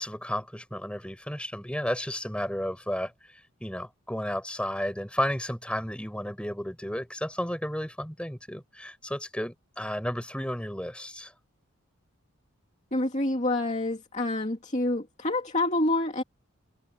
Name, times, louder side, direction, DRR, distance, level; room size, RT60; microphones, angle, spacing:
voice 1, 0.0-3.1 3.6-11.3, equal, 5° left, 7.2 m, -33 dB
voice 2, 12.9-16.2, left 2 dB, 30° left, 2.6 m, -27 dB
head